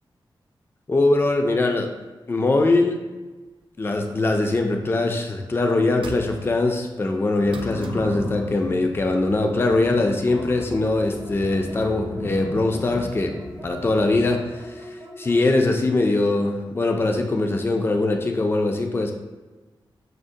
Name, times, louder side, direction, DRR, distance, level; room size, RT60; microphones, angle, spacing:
voice 1, 0.9-1.9 2.3-3.0 3.8-13.4 13.6-19.1, left 2 dB, 25° left, 4 dB, 0.4 m, -22 dB
sound 1, 4.3-5.0 6.0-6.7 7.5-8.2 10.0-10.1, right 3 dB, 75° right, 0.4 m, -39 dB
sound 2, 7.3-14.5, left 1 dB, 85° left, 1.2 m, -36 dB
sound 3, 10.1-15.7, equal, 25° right, 0.6 m, -41 dB
6.2 x 2.1 x 2.6 m, 1.2 s
wide cardioid pair, 90°, 9 cm